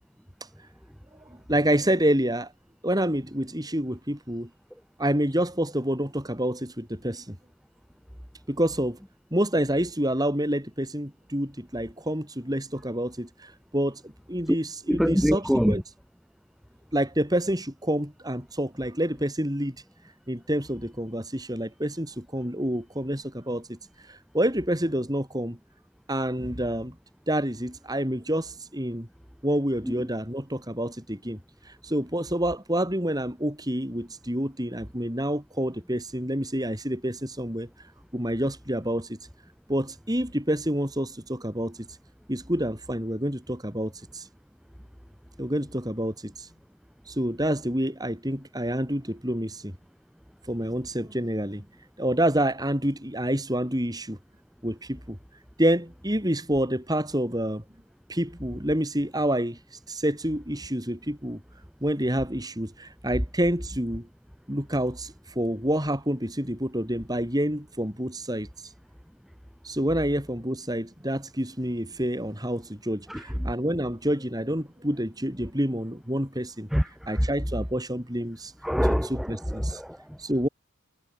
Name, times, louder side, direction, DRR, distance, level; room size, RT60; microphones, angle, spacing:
voice 1, 1.5-2.5 2.8-4.5 5.0-7.4 8.5-9.0 9.3-13.3 13.7-14.0 14.3-15.8 16.9-19.8 20.3-23.8 24.3-25.6 26.1-26.9 27.3-29.1 29.4-31.4 31.8-37.7 38.1-39.2 39.7-41.9 42.3-44.2 45.4-46.5 47.1-49.7 50.5-51.6 52.0-54.2 54.6-55.2 55.6-57.6 58.1-59.6 59.9-61.4 61.8-64.1 64.5-68.5 69.6-76.7 77.1-78.5 79.1-79.8 80.2-80.5, right 1 dB, 15° right, 7.2 m, -28 dB
voice 2, 14.9-15.8 29.8-30.1 73.1-73.5 76.7-77.3 78.6-80.2, equal, ahead, 3.5 m, -25 dB
head